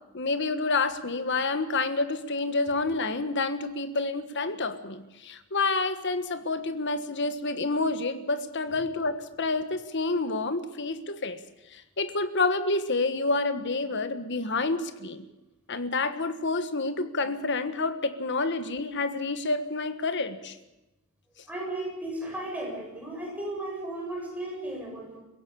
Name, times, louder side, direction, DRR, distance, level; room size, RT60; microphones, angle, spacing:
voice 1, 0.1-11.4 11.7-15.2 15.7-20.5, left 3 dB, 55° left, 10 dB, 1.5 m, -28 dB
voice 2, 21.5-25.2, right 1 dB, 5° right, -2 dB, 7.7 m, -35 dB
23.0 x 16.5 x 8.7 m, 0.98 s
head